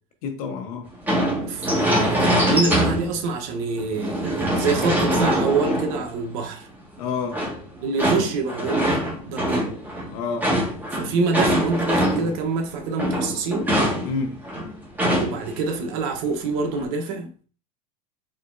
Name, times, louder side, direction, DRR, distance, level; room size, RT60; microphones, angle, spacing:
voice 1, 0.2-0.9 7.0-7.4 10.1-10.5 14.0-14.4, left 5 dB, 75° left, 1.0 m, -28 dB
sound 1, 1.0-3.3 3.8-6.4 7.3-12.4 12.7-15.6 15.8-15.9 16.4-16.8, equal, 10° right, 1.6 m, -23 dB
voice 2, 1.5-6.7 7.8-9.7 10.9-13.7 15.1-17.3, right 4 dB, 70° right, 1.0 m, -26 dB
4.2 x 4.0 x 2.6 m
supercardioid pair, 115°, 19 cm